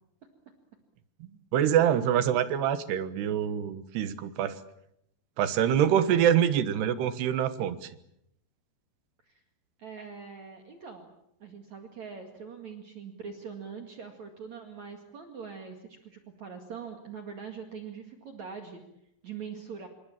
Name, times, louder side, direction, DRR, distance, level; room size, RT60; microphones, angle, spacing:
voice 1, 1.5-4.6 5.4-7.9, right 9 dB, 75° right, 12 dB, 3.3 m, -25 dB
voice 2, 9.8-11.1 11.4-18.8 19.2-19.9, right 6 dB, 50° right, 4 dB, 3.0 m, -43 dB
27.5 x 24.0 x 7.4 m, 0.78 s
omnidirectional pair, 5.0 m